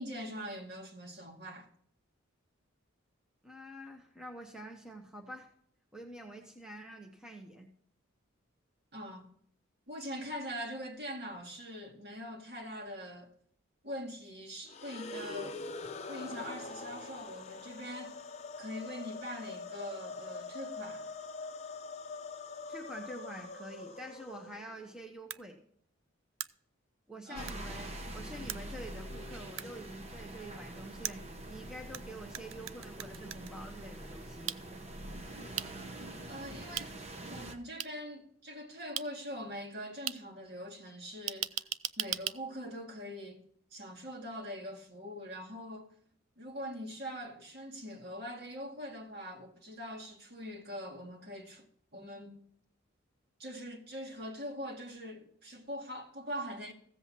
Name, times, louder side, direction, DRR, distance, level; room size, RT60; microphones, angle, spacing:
voice 1, 0.0-1.7 8.9-9.3 9.9-13.3 13.8-15.6 16.1-18.3 18.6-21.1 27.3-27.5 36.3-36.9 37.3-41.6 42.0-43.4 43.7-45.9 46.4-51.7 51.9-52.5 53.4-56.7, equal, 50° right, 2.2 m, -43 dB
voice 2, 3.4-5.5 5.9-7.7 22.7-25.6 27.1-34.5, right 1 dB, 5° right, 1.0 m, -47 dB
sound 1, 14.7-24.9, left 3 dB, 30° left, 0.7 m, -44 dB
sound 2, 25.3-25.4 26.4-26.5 27.5-27.6 28.5-28.6 29.6-29.7 31.0-32.0 32.3-33.5 34.5-34.6 35.6-35.7 36.8-36.9 37.8-37.9 39.0-39.1 40.1-40.2 41.3-42.4, right 13 dB, 70° right, 0.4 m, -36 dB
sound 3, 27.3-37.5, right 1 dB, 30° right, 0.9 m, -45 dB
15.5 x 7.9 x 2.9 m
head